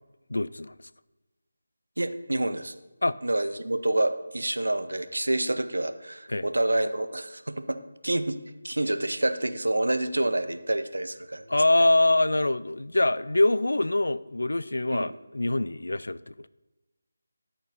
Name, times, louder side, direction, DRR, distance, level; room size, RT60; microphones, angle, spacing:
voice 1, 0.3-0.7 3.0-3.2 6.3-6.5 11.5-16.5, left 2 dB, 80° left, 16 dB, 0.3 m, -24 dB
voice 2, 2.0-2.7 3.2-8.4 8.6-11.5 14.9-15.1, right 1 dB, 85° right, 10 dB, 0.6 m, -28 dB
11.0 x 4.3 x 5.3 m, 1.1 s
figure-of-eight pair, 160°, 0 cm